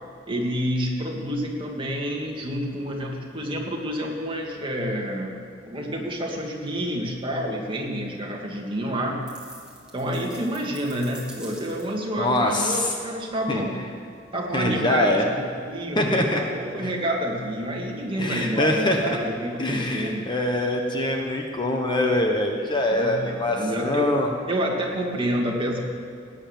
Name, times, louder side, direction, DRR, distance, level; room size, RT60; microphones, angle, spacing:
voice 1, 0.3-9.2 9.9-13.9 14.3-20.3 22.7-24.1 24.5-25.8, equal, 25° right, -1 dB, 2.2 m, -28 dB
sound 1, 9.3-12.1, right 2 dB, 5° right, 2.3 m, -45 dB
voice 2, 12.2-12.9 13.5-13.6 14.5-15.3 16.0-16.4 16.8-16.9 18.2-19.2 19.6-24.3, left 1 dB, 25° left, 1 dB, 1.2 m, -24 dB
17.5 x 9.8 x 7.3 m, 2.3 s
head